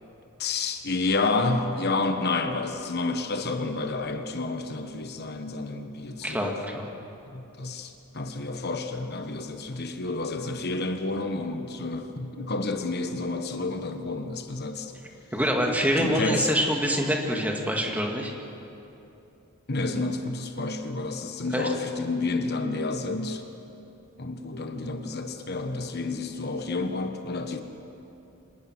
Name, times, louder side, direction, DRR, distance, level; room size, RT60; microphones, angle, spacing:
voice 1, 0.4-6.6 7.3-14.9 16.0-16.6 19.7-23.4 24.2-27.6, left 3 dB, 45° left, 6 dB, 1.2 m, -30 dB
voice 2, 6.2-6.9 15.3-18.3 21.5-21.7, equal, 5° right, 1 dB, 2.1 m, -25 dB
26.0 x 19.5 x 6.2 m, 2.9 s
head